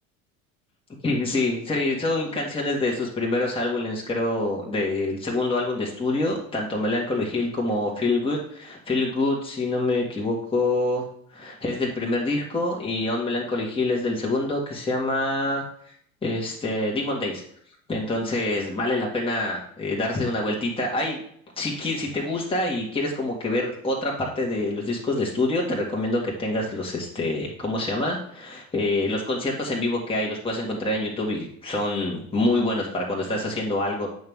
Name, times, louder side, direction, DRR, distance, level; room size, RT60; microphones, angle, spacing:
voice 1, 1.0-11.1 11.3-15.6 16.2-17.4 17.9-21.2 21.6-34.1, left 2 dB, 15° left, -3 dB, 1.8 m, -26 dB
8.0 x 5.7 x 3.6 m, 0.65 s
figure-of-eight pair, 70°, 42 cm